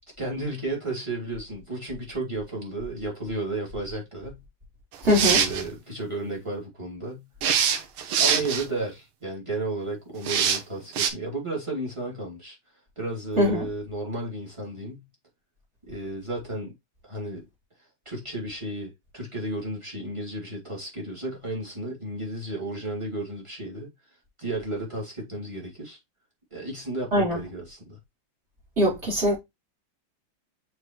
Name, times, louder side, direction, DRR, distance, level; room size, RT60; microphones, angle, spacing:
voice 1, 0.2-4.4 5.2-7.3 8.2-12.6 13.0-15.1 15.9-16.7 17.0-17.4 18.0-23.9 24.4-26.0 26.5-28.0, right 2 dB, 15° right, 2.9 m, -33 dB
sound 1, 4.9-5.6 7.4-8.7 10.3-10.6 11.0-11.1, right 8 dB, 85° right, 1.8 m, -23 dB
voice 2, 5.0-5.4 13.4-13.7 27.1-27.4 28.8-29.4, left 1 dB, 30° right, 4.1 m, -22 dB
6.5 x 4.8 x 3.1 m
omnidirectional pair, 2.3 m